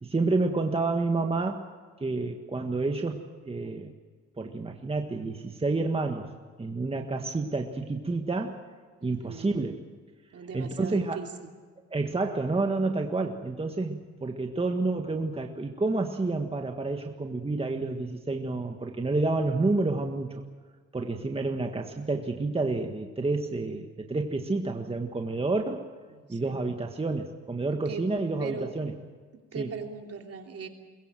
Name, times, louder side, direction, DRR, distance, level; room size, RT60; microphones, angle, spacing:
voice 1, 0.0-1.7 2.0-3.9 4.4-6.3 6.6-8.6 9.0-9.8 10.5-11.2 11.9-20.4 20.9-25.9 26.3-28.9 29.6-29.7, right 3 dB, 20° right, 4 dB, 1.7 m, -29 dB
voice 2, 9.0-9.7 10.3-11.3 26.1-26.6 27.8-28.0 28.4-28.7 29.5-30.7, right 5 dB, 50° right, 3 dB, 3.2 m, -39 dB
22.5 x 22.0 x 7.7 m, 1.5 s
cardioid pair, 90°, 30 cm